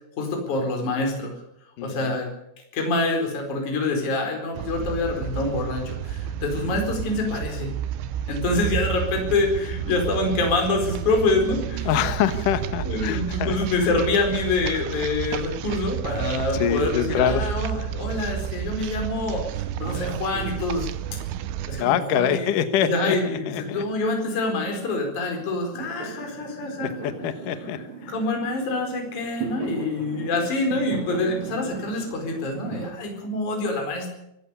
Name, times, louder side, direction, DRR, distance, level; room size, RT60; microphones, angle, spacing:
voice 1, 0.2-1.4 1.8-2.3 2.7-7.7 8.3-11.9 12.9-21.2 21.7-22.5 22.8-27.1 28.1-34.1, left 2 dB, 40° left, 2 dB, 5.6 m, -26 dB
voice 2, 1.8-2.2 11.8-13.6 16.5-17.5 21.8-23.8 26.8-28.1, left 9 dB, 75° left, 10 dB, 2.0 m, -25 dB
sound 1, 4.6-21.8, right 11 dB, 75° right, 3.0 m, -31 dB
Fireworks, 16.4-17.4 17.6-32.9, right 4 dB, 30° right, 3.4 m, -40 dB
24.0 x 16.5 x 6.9 m, 0.82 s
omnidirectional pair, 5.6 m